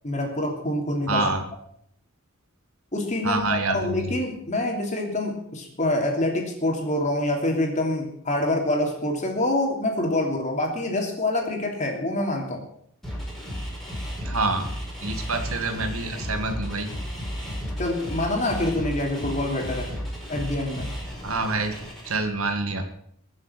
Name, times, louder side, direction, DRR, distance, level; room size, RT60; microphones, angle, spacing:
voice 1, 0.0-1.2 2.9-12.6 17.8-19.9 20.3-20.9, left 1 dB, 30° left, 1 dB, 3.2 m, -26 dB
voice 2, 1.1-1.4 3.2-4.1 14.2-14.6 15.0-16.9 21.2-21.8 22.1-22.8, right 3 dB, 70° right, 6 dB, 2.1 m, -26 dB
sound 1, 13.0-22.2, equal, ahead, 4.8 m, -34 dB
22.0 x 7.6 x 5.9 m, 0.67 s
head